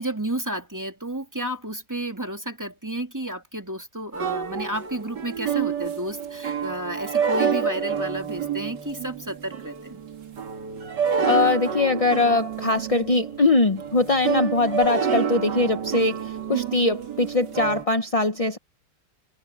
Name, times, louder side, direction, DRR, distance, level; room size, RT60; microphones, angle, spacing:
voice 1, 0.0-10.0, right 1 dB, 10° right, 2.5 m, -32 dB
sound 1, 4.1-17.8, right 7 dB, 75° right, 2.3 m, -28 dB
voice 2, 11.3-18.6, left 3 dB, 35° left, 0.5 m, -22 dB
omnidirectional pair, 1.9 m